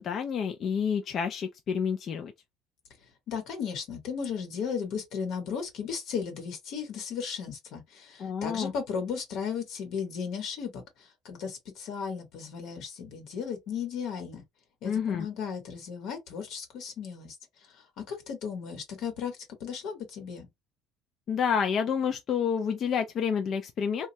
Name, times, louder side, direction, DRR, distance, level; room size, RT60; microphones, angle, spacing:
voice 1, 0.0-2.3 8.2-8.7 14.8-15.3 21.3-24.1, left 7 dB, 45° left, 0.4 m, -29 dB
voice 2, 3.3-14.4 14.8-20.5, left 6 dB, 65° left, 1.0 m, -35 dB
3.0 x 2.2 x 2.6 m
cardioid pair, 130°, 0 cm